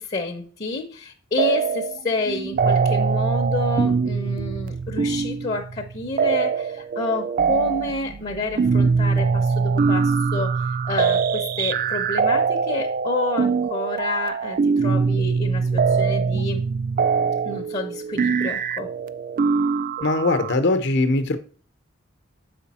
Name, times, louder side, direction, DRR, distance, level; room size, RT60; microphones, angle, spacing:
voice 1, 0.0-16.6 17.4-18.9, left 2 dB, 35° left, 0.8 m, -29 dB
sound 1, 1.4-2.0 2.3-20.5, right 5 dB, 45° right, 0.3 m, -23 dB
voice 2, 20.0-21.4, left 2 dB, 60° left, 0.9 m, -21 dB
7.0 x 5.2 x 4.2 m
head